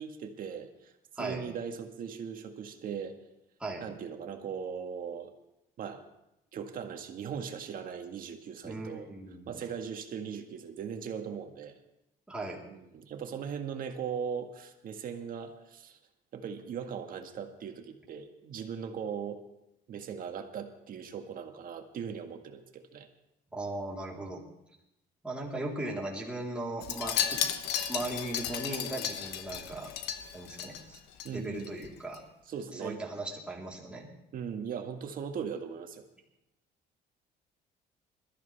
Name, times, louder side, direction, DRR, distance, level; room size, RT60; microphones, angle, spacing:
voice 1, 0.0-3.2 3.8-5.3 5.8-6.0 6.5-9.1 9.5-11.8 12.7-16.0 16.3-19.4 19.9-23.1 24.2-24.3 31.2-31.9 32.5-33.0 34.3-36.0, right 7 dB, 55° right, 5 dB, 1.8 m, -39 dB
voice 2, 8.6-9.6 12.3-12.6 23.5-24.4 25.2-27.5 27.9-29.9 30.3-31.0 31.3-32.2 32.7-34.1, right 2 dB, 5° right, -4 dB, 3.8 m, -38 dB
Wind chime, 26.8-31.3 31.6-31.9 32.1-32.2, left 9 dB, 90° left, 1.1 m, -34 dB
21.5 x 13.5 x 3.5 m, 0.85 s
cardioid pair, 110°, 17 cm